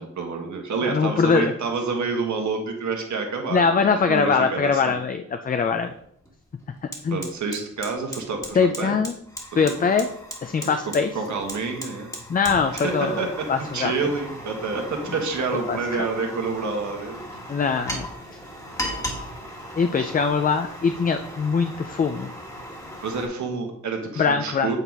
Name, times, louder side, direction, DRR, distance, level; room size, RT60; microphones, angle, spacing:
voice 1, 0.0-5.0 7.1-9.0 9.5-9.9 10.6-12.2 12.7-17.2 20.0-20.1 23.0-24.8, right 4 dB, 75° right, 2 dB, 1.5 m, -28 dB
voice 2, 0.9-1.5 3.5-5.9 6.8-7.2 8.6-9.1 9.6-10.1 10.4-11.1 12.3-13.1 13.5-13.9 15.7-15.8 17.5-18.1 19.8-22.3 24.2-24.7, left 5 dB, 30° left, 8 dB, 0.4 m, -22 dB
Fire, 5.8-5.9 6.3-23.3, equal, 10° left, 1.4 m, -37 dB
8.0 x 4.0 x 4.6 m, 0.71 s
wide cardioid pair, 115°, 29 cm